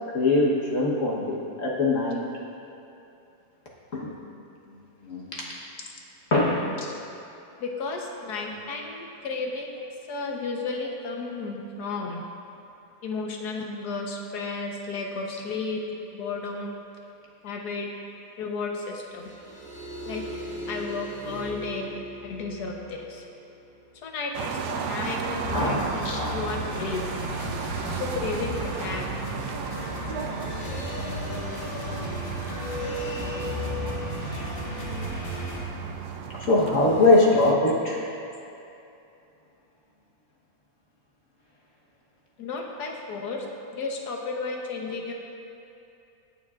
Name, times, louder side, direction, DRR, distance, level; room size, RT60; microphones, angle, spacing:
voice 1, 0.1-2.2 3.9-4.1 5.0-5.2 6.3-6.7 25.5-26.4 36.4-38.0, left 2 dB, 50° left, -4 dB, 1.5 m, -22 dB
voice 2, 7.6-9.7 10.1-12.2 13.0-15.8 16.1-16.8 17.4-17.9 18.4-19.3 20.1-20.2 20.7-21.9 22.2-23.2 24.0-27.1 27.9-29.4 42.4-43.5 43.7-45.1, left 4 dB, 75° left, 1 dB, 1.6 m, -33 dB
sound 1, 19.1-24.7 30.4-35.1 36.7-37.1, equal, 5° left, 1.5 m, -39 dB
sound 2, 24.3-37.5, right 6 dB, 80° right, 1.2 m, -35 dB
sound 3, 25.4-35.6, equal, 35° left, 2.0 m, -34 dB
21.5 x 7.2 x 2.5 m, 2.7 s
omnidirectional pair, 1.8 m